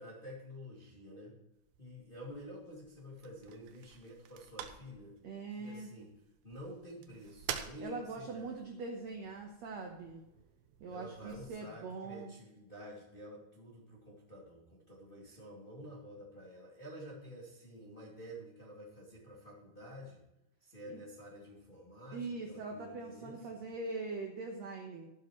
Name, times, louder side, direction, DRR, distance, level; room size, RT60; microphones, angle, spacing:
voice 1, 0.0-1.3 1.8-5.2 5.6-6.1 6.4-8.6 10.9-20.2 20.6-23.6, equal, 20° left, -5 dB, 1.7 m, -50 dB
sound 1, 1.5-11.5, right 9 dB, 90° right, 3.0 m, -49 dB
voice 2, 5.2-5.9 7.8-10.2 10.8-12.3 20.9-21.0 22.1-25.1, right 3 dB, 70° right, 2 dB, 1.6 m, -42 dB
14.0 x 11.5 x 3.1 m, 0.91 s
omnidirectional pair, 4.7 m